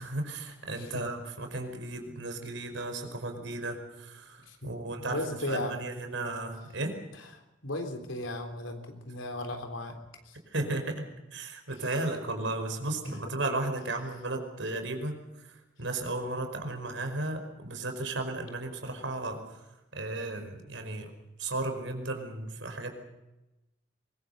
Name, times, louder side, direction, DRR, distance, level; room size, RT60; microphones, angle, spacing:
voice 1, 0.0-6.9 10.5-19.6 19.9-21.1 21.4-22.9, right 2 dB, 75° right, 5 dB, 5.0 m, -35 dB
voice 2, 0.7-1.1 4.5-4.8 5.1-5.8 7.6-10.0 10.3-10.4 13.0-13.2, left 1 dB, 85° left, 5 dB, 3.5 m, -36 dB
23.5 x 22.0 x 6.7 m, 0.98 s
head